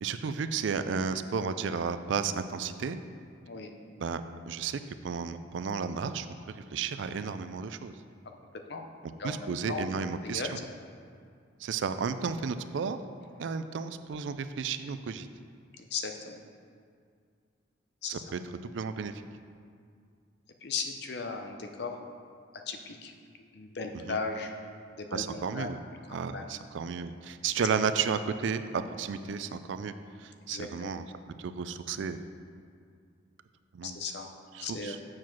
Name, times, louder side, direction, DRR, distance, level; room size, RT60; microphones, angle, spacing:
voice 1, 0.0-3.0 4.0-6.3 6.7-7.9 9.2-10.6 11.6-13.0 13.4-15.3 18.1-19.1 24.1-24.2 25.1-25.8 26.1-29.9 30.2-31.0 31.4-32.2 33.7-34.0 34.6-35.0, right 6 dB, 70° right, 11 dB, 0.4 m, -33 dB
voice 2, 9.2-10.5 13.4-13.5 15.8-16.4 18.0-18.2 20.6-22.0 22.7-23.1 23.5-24.5 24.9-25.7 26.1-26.5 30.5-30.9 33.8-34.3 34.6-35.0, left 4 dB, 55° left, 4 dB, 0.6 m, -37 dB
7.5 x 4.7 x 6.0 m, 2.2 s
head